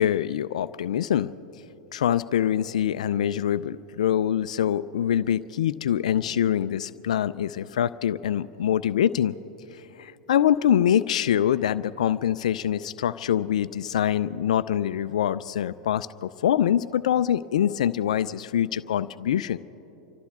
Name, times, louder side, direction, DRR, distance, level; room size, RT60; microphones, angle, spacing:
voice 1, 0.0-1.3 1.9-9.3 10.0-19.6, left 10 dB, 80° left, 14 dB, 0.4 m, -24 dB
28.0 x 13.0 x 3.6 m, 2.9 s
hypercardioid pair, 100°, 4 cm